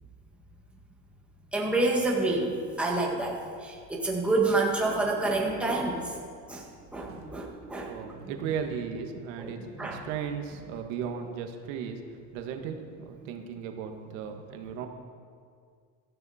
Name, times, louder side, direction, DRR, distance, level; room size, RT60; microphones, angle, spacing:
voice 1, 1.5-6.2 6.5-7.9 9.4-9.5 9.8-10.0, right 2 dB, 5° right, -2 dB, 1.7 m, -28 dB
sound 1, 5.1-6.4 7.1-7.8 8.1-9.2 9.5-10.6, right 1 dB, 30° right, 3.4 m, -49 dB
voice 2, 7.9-9.6 9.9-12.0 12.3-14.9, right 7 dB, 75° right, 4 dB, 1.6 m, -36 dB
15.5 x 13.0 x 4.3 m, 2.1 s
cardioid pair, 150°, 39 cm